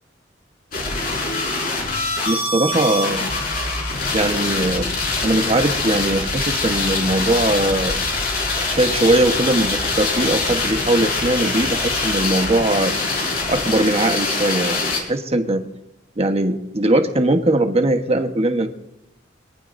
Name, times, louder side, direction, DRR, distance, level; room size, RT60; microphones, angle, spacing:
sound 1, 0.7-15.0, left 3 dB, 55° left, 5.1 m, -23 dB
voice 1, 2.3-3.3 4.1-4.9 5.2-8.0 8.7-12.9 13.5-15.6 16.2-18.7, right 1 dB, 35° right, 5 dB, 1.3 m, -20 dB
24.5 x 19.5 x 2.7 m, 0.91 s
head